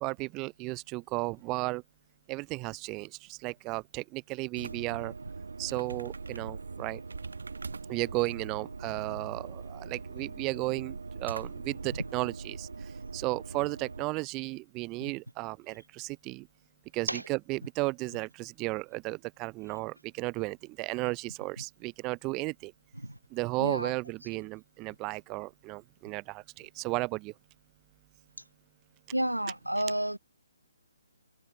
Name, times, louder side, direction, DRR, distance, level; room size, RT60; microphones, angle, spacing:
voice 1, 0.0-1.8 2.3-5.1 5.6-7.0 7.9-12.7 13.1-16.5 16.9-22.7 23.3-27.3, right 24 dB, 20° right, 0.4 m, -34 dB
sound 1, 4.6-14.1, right 4 dB, 65° right, 1.2 m, -41 dB
voice 2, 23.6-23.9 29.1-30.2, right 1 dB, 90° right, 0.7 m, -31 dB
figure-of-eight pair, 135°, 0 cm